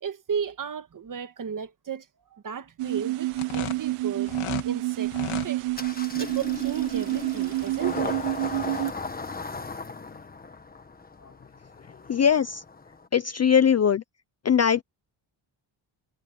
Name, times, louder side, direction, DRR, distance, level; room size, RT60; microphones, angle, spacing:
voice 1, 0.0-2.0 2.3-4.3 4.6-5.1 5.4-5.7 6.1-8.2, right 7 dB, 40° right, 1.5 m, -34 dB
sound 1, 2.8-8.9, right 19 dB, 85° right, 0.7 m, -28 dB
sound 2, 3.3-4.7 5.1-5.5, left 10 dB, 80° left, 2.5 m, -34 dB
Engine starting, 5.7-13.1, left 4 dB, 20° left, 1.2 m, -37 dB
voice 2, 11.9-12.6 13.1-14.0 14.4-14.8, left 7 dB, 35° left, 0.4 m, -21 dB
wide cardioid pair, 175°, 50 cm